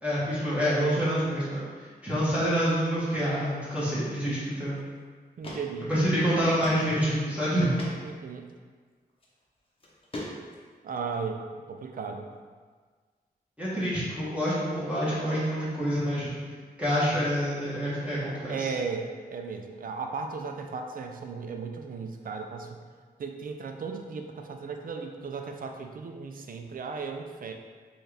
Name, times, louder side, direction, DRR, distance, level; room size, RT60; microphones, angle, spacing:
voice 1, 0.0-4.8 5.9-7.7 13.6-16.3 16.8-18.7, equal, 5° right, -10 dB, 1.1 m, -27 dB
sound 1, 4.8-4.9 5.4-5.6 5.9-6.0 6.6-6.8 7.2-7.3 7.8-7.9 9.1-9.3 9.8-10.7, left 1 dB, 35° left, 0.8 m, -38 dB
voice 2, 5.4-6.2 8.0-8.5 10.8-11.4 11.7-12.3 18.5-22.8 23.2-27.5, right 5 dB, 60° right, 4 dB, 0.4 m, -36 dB
4.1 x 2.4 x 3.3 m, 1.5 s
wide cardioid pair, 90°, 17 cm